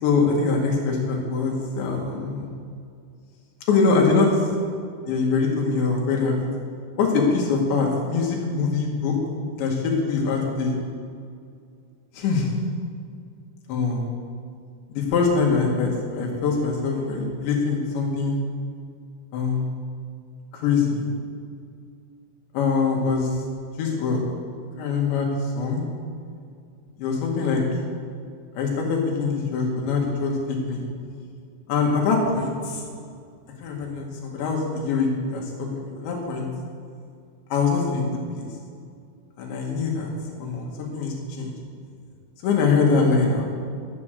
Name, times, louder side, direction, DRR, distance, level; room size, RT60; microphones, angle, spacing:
voice 1, 0.0-2.5 3.7-4.3 5.1-6.4 7.0-9.1 9.6-10.8 12.1-12.5 13.7-14.0 14.9-18.4 19.3-19.7 20.5-21.1 22.5-23.4 23.8-24.2 24.8-25.3 25.6-25.8 27.0-27.6 28.6-30.8 31.7-32.8 33.6-35.4 36.0-36.5 37.5-38.5 39.4-40.1 40.4-41.6 42.4-43.5, left 4 dB, 75° left, -1 dB, 4.4 m, -23 dB
14.5 x 9.8 x 6.7 m, 2.3 s
omnidirectional pair, 5.2 m